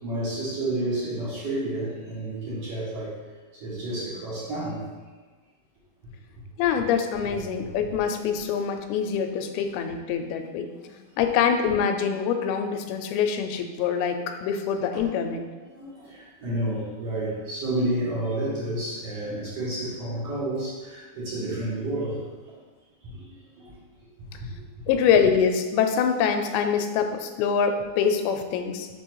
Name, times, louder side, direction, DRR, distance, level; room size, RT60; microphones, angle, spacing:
voice 1, 0.0-3.2 3.6-4.8 10.4-10.5 15.0-15.2 15.7-22.2 23.0-23.2 23.5-23.7, right 1 dB, 50° right, -8 dB, 2.4 m, -30 dB
voice 2, 6.6-10.7 11.2-15.5 24.9-28.9, left 7 dB, 85° left, 7 dB, 2.5 m, -24 dB
5.5 x 4.7 x 4.6 m, 1.3 s
omnidirectional pair, 4.3 m